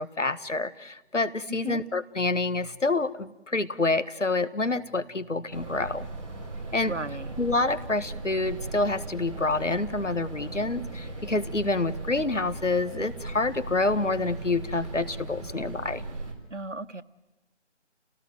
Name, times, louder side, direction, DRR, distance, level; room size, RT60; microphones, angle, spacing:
voice 1, 0.0-6.1 6.7-6.9 7.4-16.0, left 3 dB, 85° left, 13 dB, 1.6 m, -27 dB
sound 1, 5.5-16.3, right 2 dB, 25° right, 3.8 m, -38 dB
voice 2, 6.8-7.3 16.5-17.0, right 2 dB, 90° right, 11 dB, 1.5 m, -35 dB
29.5 x 18.5 x 9.2 m, 0.97 s
figure-of-eight pair, 160°, 36 cm